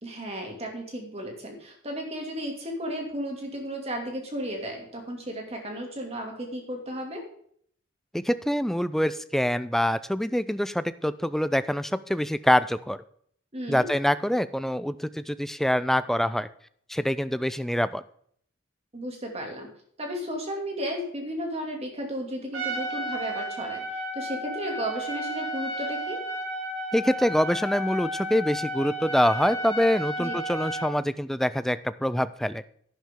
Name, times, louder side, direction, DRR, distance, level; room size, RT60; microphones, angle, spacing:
voice 1, 0.0-7.2 13.5-13.9 18.9-19.7 20.0-26.2 30.2-30.3, equal, 30° right, 2 dB, 2.4 m, -34 dB
voice 2, 8.1-13.0 13.7-16.5 16.9-18.0 26.9-32.6, equal, ahead, 14 dB, 0.3 m, -25 dB
Trumpet, 22.5-31.0, right 1 dB, 80° right, 2.8 m, -33 dB
11.0 x 10.5 x 3.7 m, 0.63 s
head